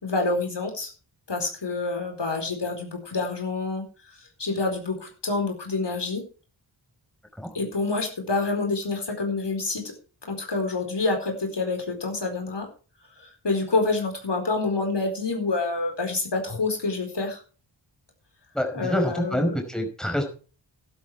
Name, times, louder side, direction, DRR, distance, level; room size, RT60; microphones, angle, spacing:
voice 1, 0.0-0.9 1.3-3.8 4.2-6.2 7.5-9.9 10.3-12.7 13.2-17.4 18.7-19.6, left 3 dB, 60° left, 3 dB, 4.6 m, -27 dB
voice 2, 18.5-20.2, equal, ahead, 3 dB, 5.0 m, -26 dB
12.0 x 12.0 x 4.7 m, 0.36 s
cardioid pair, 55°, 48 cm